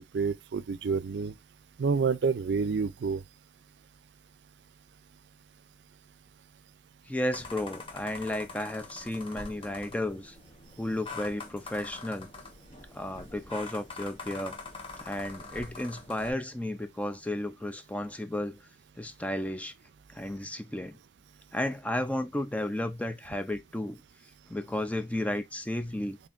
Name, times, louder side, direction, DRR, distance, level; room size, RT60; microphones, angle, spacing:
voice 1, 0.1-1.3 1.8-3.2, right 5 dB, 80° right, 0.4 m, -28 dB
voice 2, 7.1-10.4 10.8-12.3 12.9-14.6 15.0-18.6 19.0-19.7 20.1-21.0 21.5-24.0 24.5-26.2, left 1 dB, 10° left, 0.4 m, -33 dB
sound 1, 7.3-16.3, left 3 dB, 30° left, 1.0 m, -44 dB
4.3 x 3.3 x 2.4 m
head